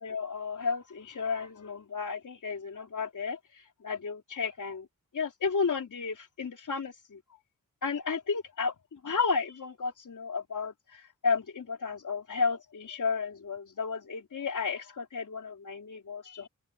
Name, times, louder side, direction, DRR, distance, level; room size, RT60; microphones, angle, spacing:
voice 1, 0.0-3.4 3.8-4.9 5.1-7.2 7.8-16.5, left 5 dB, 65° left, 3.8 m, -33 dB
open air
wide cardioid pair, 115°, 33 cm